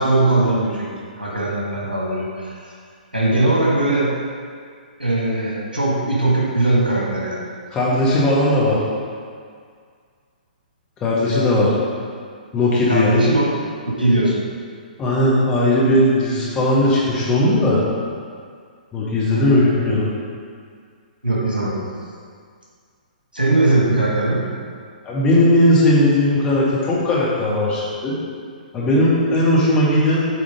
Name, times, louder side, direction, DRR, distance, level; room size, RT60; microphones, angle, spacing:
voice 1, 0.0-2.7 3.1-4.2 5.0-7.4 12.9-13.5 13.8-14.4 19.3-19.6 21.2-21.8 23.3-24.5, right 2 dB, 80° right, -5 dB, 1.9 m, -20 dB
voice 2, 7.7-8.8 11.0-11.7 12.5-13.2 15.0-17.8 18.9-20.1 25.0-28.2 28.7-30.2, left 1 dB, 15° left, -7 dB, 1.6 m, -17 dB
8.1 x 3.7 x 5.2 m, 2.1 s
figure-of-eight pair, 120°, 5 cm